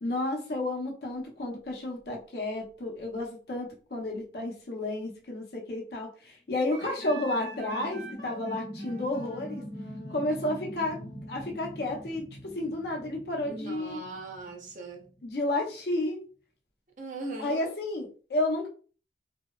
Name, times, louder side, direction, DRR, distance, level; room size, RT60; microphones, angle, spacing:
voice 1, 0.0-9.6 10.1-11.0 11.3-12.3 12.5-14.0 15.2-16.2 17.4-18.7, left 1 dB, 65° left, 0.6 m, -31 dB
Wind instrument woodwind instrument, 6.7-12.1, right 2 dB, 90° right, 0.8 m, -47 dB
sound 1, 6.8-15.2, equal, 5° left, 0.8 m, -44 dB
voice 2, 13.4-15.1 17.0-17.7, right 2 dB, 45° right, 0.5 m, -39 dB
2.7 x 2.0 x 2.2 m
head